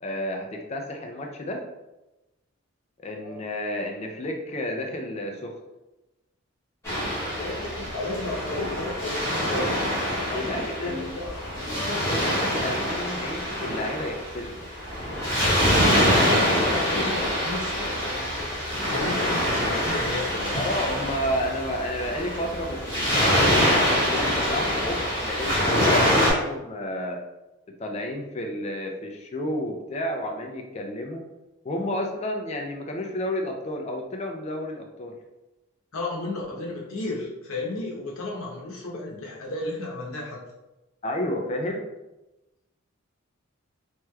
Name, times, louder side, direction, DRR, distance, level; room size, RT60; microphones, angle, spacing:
voice 1, 0.0-1.6 3.0-5.6 10.2-11.1 11.7-14.6 20.5-27.2 27.8-31.2 31.6-35.1 41.0-41.8, left 1 dB, 30° left, 2 dB, 0.3 m, -31 dB
Waves surf, 6.8-26.3, equal, 15° left, 1.1 m, -25 dB
voice 2, 7.4-9.8 10.3-11.4 11.7-12.0 15.4-15.7 16.0-20.5 25.7-25.9 35.9-40.4, left 2 dB, 80° left, -2 dB, 0.8 m, -33 dB
3.1 x 3.0 x 2.3 m, 1.0 s
head